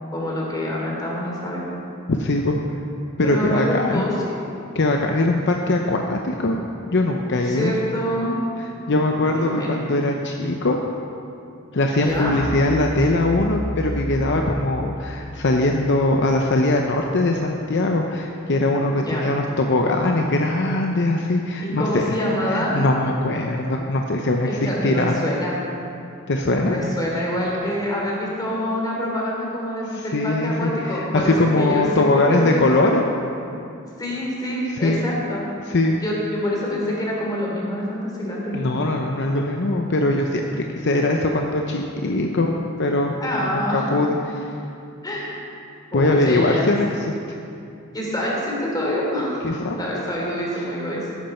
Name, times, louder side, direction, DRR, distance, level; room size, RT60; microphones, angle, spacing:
voice 1, 0.1-1.6 3.2-4.4 7.4-8.3 9.1-9.8 11.9-12.3 18.9-19.3 21.6-22.8 24.5-25.5 26.6-32.9 34.0-35.4 36.0-38.5 43.2-43.9 45.0-45.4 45.9-46.8 47.9-49.4 49.8-51.1, equal, 20° left, -3 dB, 3.0 m, -26 dB
voice 2, 2.1-2.6 3.2-4.0 4.7-7.8 8.9-10.8 11.7-22.1 22.5-25.2 26.3-26.8 29.9-33.0 34.8-35.0 35.7-36.0 38.5-43.2 43.5-44.2 44.4-44.5 45.9-47.1 49.4-50.1, left 2 dB, 55° left, 2 dB, 0.7 m, -21 dB
sound 1, 12.1-16.9, equal, 75° left, 1.8 m, -32 dB
14.5 x 11.5 x 4.4 m, 2.6 s
head